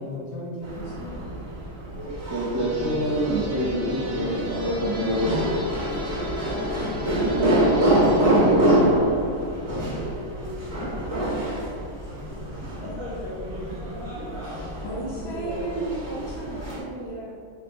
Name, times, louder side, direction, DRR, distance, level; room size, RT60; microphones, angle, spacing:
voice 1, 0.0-1.4 12.8-12.9 14.8-17.3, right 1 dB, 50° left, -6 dB, 1.7 m, -34 dB
sound 1, 0.6-16.8, right 1 dB, 75° right, 2.3 m, -26 dB
voice 2, 2.0-5.6 7.0-8.8 9.7-9.9, equal, 20° right, -10 dB, 1.2 m, -27 dB
sound 2, 2.6-8.2, equal, 55° right, 1.6 m, -36 dB
voice 3, 9.7-10.8 12.2-14.8 15.1-16.5, left 1 dB, 85° left, -7 dB, 1.9 m, -39 dB
5.3 x 4.8 x 4.5 m, 2.4 s
omnidirectional pair, 1.4 m